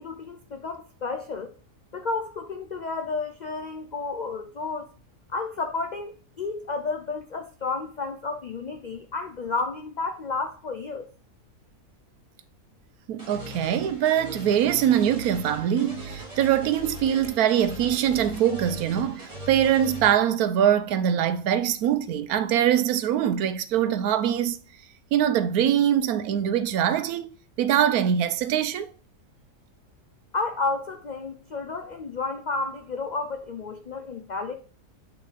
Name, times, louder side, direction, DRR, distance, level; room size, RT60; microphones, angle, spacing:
voice 1, 0.0-1.5 1.9-4.9 5.3-11.1 30.3-34.5, left 3 dB, 80° left, 0.4 m, -31 dB
voice 2, 13.1-24.6 25.1-27.3 27.6-28.9, right 10 dB, 85° right, 1.1 m, -23 dB
sound 1, 13.2-20.1, equal, 25° right, 2.3 m, -40 dB
8.2 x 3.5 x 3.9 m
omnidirectional pair, 1.6 m